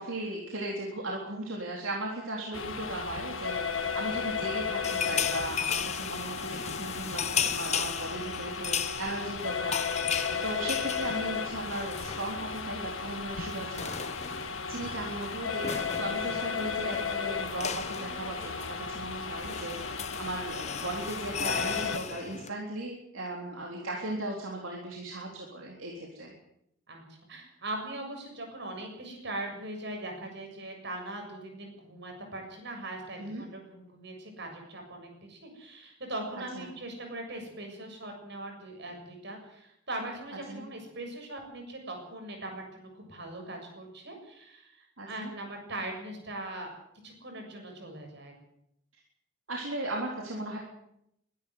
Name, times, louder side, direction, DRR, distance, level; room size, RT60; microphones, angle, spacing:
voice 1, 0.0-14.0 14.4-26.3 33.2-33.4 36.6-36.7 40.5-40.6 45.0-45.3 49.5-50.6, right 1 dB, 80° right, -1 dB, 3.8 m, -37 dB
sound 1, 2.5-22.0, left 5 dB, 75° left, 1.8 m, -34 dB
voice 2, 3.9-4.3 13.7-14.1 14.8-15.3 26.9-46.7 47.0-48.3, right 1 dB, 60° right, 3 dB, 7.3 m, -41 dB
sound 2, 4.8-12.7 13.0-13.2 13.4-22.5, left 8 dB, 35° left, 0.9 m, -36 dB
23.0 x 12.0 x 9.6 m, 0.78 s
head